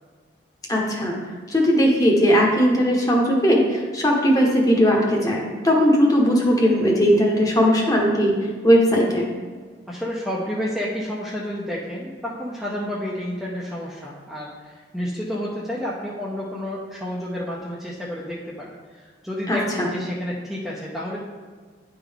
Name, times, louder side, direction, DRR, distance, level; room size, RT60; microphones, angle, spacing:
voice 1, 0.7-1.1 1.5-8.3 8.6-9.3 19.5-19.9, equal, 20° left, -1 dB, 1.0 m, -18 dB
voice 2, 9.9-18.7 19.0-21.2, equal, ahead, -6 dB, 0.6 m, -30 dB
10.0 x 3.7 x 3.5 m, 1.5 s
head